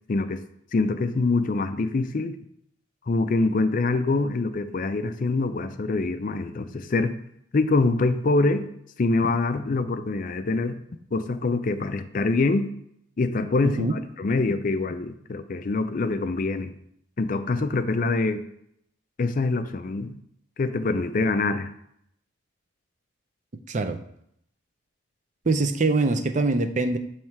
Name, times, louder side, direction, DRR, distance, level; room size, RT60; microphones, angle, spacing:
voice 1, 0.1-0.4 0.7-2.4 3.1-7.1 7.5-8.7 9.0-10.8 11.1-12.7 13.2-16.7 17.2-18.4 19.2-20.2 20.6-21.7, left 3 dB, 40° left, 10 dB, 0.4 m, -24 dB
voice 2, 13.6-14.0 23.7-24.0 25.4-27.0, right 3 dB, 35° right, 8 dB, 0.5 m, -23 dB
7.2 x 3.2 x 4.6 m, 0.72 s
head